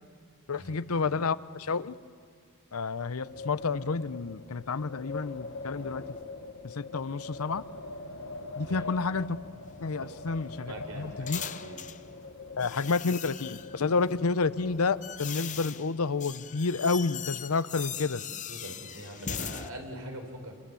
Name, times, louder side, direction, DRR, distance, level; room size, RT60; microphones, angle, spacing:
voice 1, 0.5-2.0 2.7-6.0 6.6-7.6 8.6-9.4 9.8-11.4 12.6-18.2, left 4 dB, 75° left, 15 dB, 0.7 m, -30 dB
Wind, 3.1-15.7, left 3 dB, 60° left, 1.2 m, -43 dB
voice 2, 8.6-8.9 10.0-10.4 10.7-11.9 18.5-20.6, right 1 dB, 80° right, 4 dB, 4.6 m, -43 dB
sound 1, 9.6-12.0 12.6-13.8 14.5-19.7, left 8 dB, 35° left, 0.7 m, -40 dB
27.0 x 26.5 x 7.0 m, 2.2 s
head